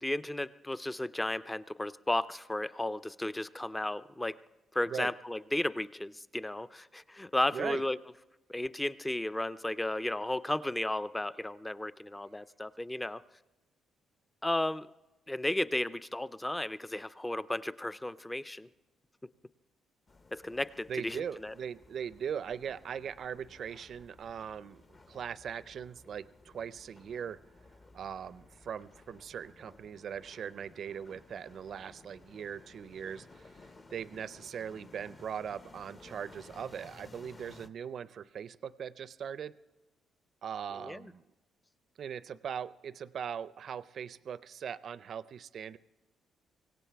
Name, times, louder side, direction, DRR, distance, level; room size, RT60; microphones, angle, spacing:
voice 1, 0.0-4.4 4.7-8.0 8.5-13.2 14.4-14.9 15.3-18.7 20.3-21.5 40.8-41.0, left 1 dB, 10° left, 15 dB, 0.4 m, -34 dB
voice 2, 7.5-7.8 20.9-24.8 25.1-27.4 27.9-39.5 40.4-41.2 42.0-45.8, right 8 dB, 60° right, 17 dB, 0.4 m, -40 dB
sound 1, 20.1-37.7, left 3 dB, 35° left, 0.8 m, -57 dB
24.5 x 17.0 x 3.4 m, 1.1 s
cardioid pair, 90°, 0 cm